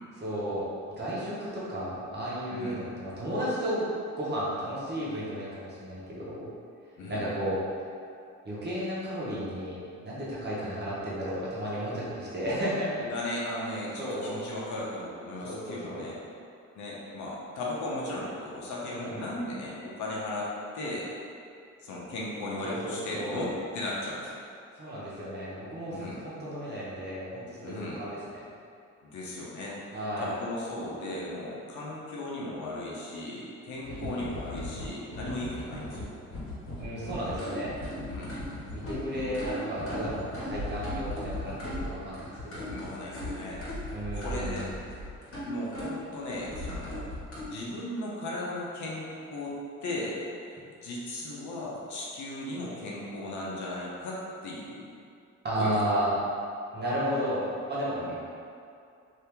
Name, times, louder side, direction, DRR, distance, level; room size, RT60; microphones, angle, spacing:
voice 1, 0.2-3.9 4.2-6.5 7.1-7.6 8.4-13.1 14.0-14.3 15.4-16.1 18.8-19.3 22.6-23.5 24.8-28.2 29.9-30.3 33.9-34.2 36.8-37.7 38.7-42.7 43.9-44.6 55.4-56.1 56.7-58.0, equal, 35° right, -8 dB, 1.1 m, -33 dB
voice 2, 7.0-7.3 13.0-16.2 16.7-21.1 21.8-24.3 25.9-26.2 27.6-28.0 29.0-36.1 38.1-38.3 39.1-39.2 42.7-43.6 44.1-44.7 45.4-47.0 47.5-49.5 49.8-50.2 50.4-54.9 55.6-55.7 55.9-56.0 58.0-58.2, left 1 dB, 75° left, -5 dB, 0.8 m, -36 dB
sound 1, 33.8-47.4, left 1 dB, 45° left, 1.4 m, -38 dB
2.8 x 2.7 x 3.5 m, 2.5 s
cardioid pair, 90°, 30 cm